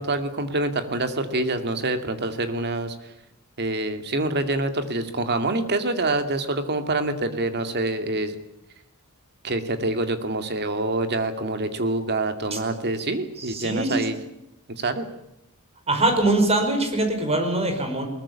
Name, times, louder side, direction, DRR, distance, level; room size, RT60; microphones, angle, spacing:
voice 1, 0.0-3.0 3.6-8.4 9.4-14.2 14.7-15.1, right 2 dB, 50° right, 8 dB, 2.4 m, -26 dB
voice 2, 13.4-14.0 15.9-18.0, right 2 dB, 30° right, 5 dB, 5.3 m, -23 dB
21.5 x 19.5 x 8.7 m, 0.85 s
head